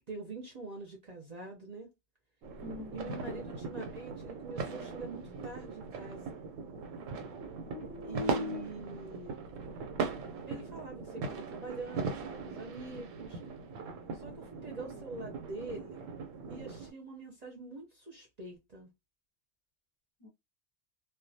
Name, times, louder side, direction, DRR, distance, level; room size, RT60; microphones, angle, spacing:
voice 1, 0.1-1.9 2.9-6.4 8.0-9.4 10.5-13.4 14.1-16.1 16.5-18.9, right 3 dB, 45° right, 0.6 m, -45 dB
sound 1, 2.4-16.9, right 4 dB, 90° right, 1.0 m, -40 dB
voice 2, 2.6-3.4 7.6-8.7 20.2-20.3, left 4 dB, 40° left, 0.5 m, -41 dB
2.4 x 2.2 x 2.6 m
omnidirectional pair, 1.3 m